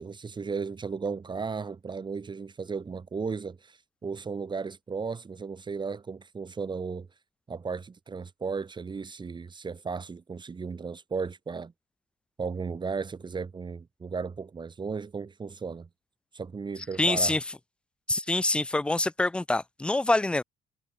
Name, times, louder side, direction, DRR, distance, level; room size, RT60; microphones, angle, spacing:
voice 1, 0.0-7.1 7.5-11.7 12.4-15.9 16.3-17.4, right 5 dB, 25° right, 2.3 m, -35 dB
voice 2, 17.0-17.4 18.1-20.4, left 2 dB, 5° left, 0.3 m, -25 dB
cardioid pair, 110°, 17 cm